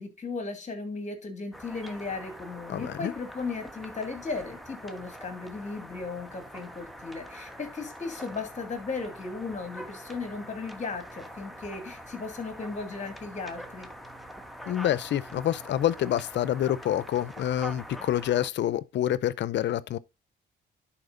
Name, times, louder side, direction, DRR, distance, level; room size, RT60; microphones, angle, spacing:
voice 1, 0.0-13.9, left 4 dB, 35° left, 2.4 m, -36 dB
sound 1, 1.5-18.5, equal, ahead, 1.1 m, -44 dB
voice 2, 2.7-3.1 14.7-20.0, left 11 dB, 65° left, 0.6 m, -27 dB
10.5 x 4.3 x 3.9 m
cardioid pair, 90°, 20 cm